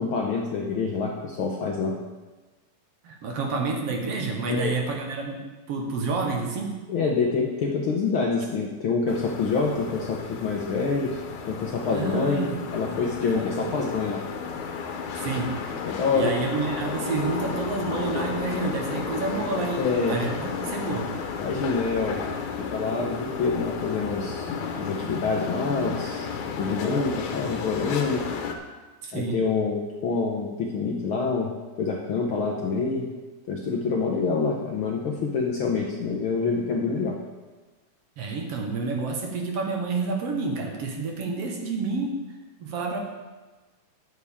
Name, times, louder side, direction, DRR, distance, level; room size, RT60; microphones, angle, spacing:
voice 1, 0.0-2.0 4.5-4.8 6.9-11.2 11.5-12.4 12.7-14.2 15.8-16.3 19.8-20.2 21.4-22.2 22.7-24.5 24.7-26.3 26.6-28.2 29.1-31.5 31.8-33.1 33.5-37.1, left 4 dB, 65° left, -1 dB, 1.3 m, -26 dB
voice 2, 3.0-5.4 5.7-6.7 11.9-12.5 13.2-13.7 15.2-15.5 16.1-21.1 29.0-29.4 38.2-42.2 42.6-43.0, right 3 dB, 60° right, 1 dB, 2.0 m, -29 dB
sound 1, 9.1-28.6, left 5 dB, 85° left, 2.4 m, -33 dB
13.0 x 8.5 x 3.6 m, 1.2 s
omnidirectional pair, 3.3 m